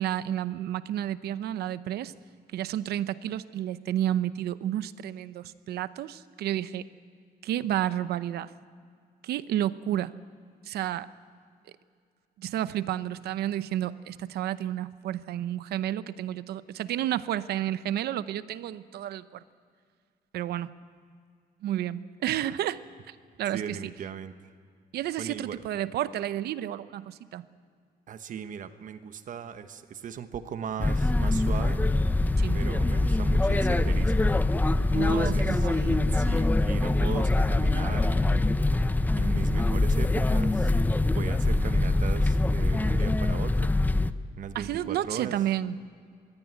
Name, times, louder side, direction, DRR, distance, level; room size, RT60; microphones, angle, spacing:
voice 1, 0.0-2.1 2.5-6.8 7.4-8.5 9.2-10.1 10.7-11.1 12.4-19.4 20.3-20.7 21.6-22.8 23.1-23.9 24.9-27.4 32.4-32.7 34.9-36.1 44.5-45.9, right 12 dB, 85° right, 15 dB, 0.8 m, -31 dB
voice 2, 23.5-24.3 25.2-25.6 28.1-31.8 32.5-34.1 34.9-35.7 36.1-38.5 39.2-43.7 44.4-45.3, right 8 dB, 55° right, 10 dB, 1.1 m, -38 dB
sound 1, 30.8-44.1, left 2 dB, 10° left, 0.6 m, -24 dB
21.5 x 15.5 x 9.4 m, 2.1 s
cardioid pair, 135°, 16 cm